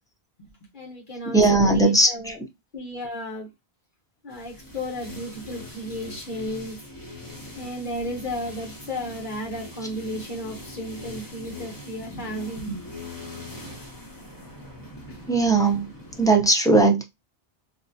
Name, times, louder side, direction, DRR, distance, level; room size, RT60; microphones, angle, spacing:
voice 1, 0.7-2.4 2.7-3.5 4.2-6.8 7.6-13.1 15.1-15.2 15.4-15.5, equal, 55° left, 1.0 m, -34 dB
voice 2, 1.3-2.3 15.3-15.9 16.2-17.0, right 2 dB, 5° left, 0.4 m, -18 dB
sound 1, 4.3-16.3, left 2 dB, 20° left, 0.9 m, -41 dB
4.0 x 2.2 x 2.7 m
omnidirectional pair, 1.1 m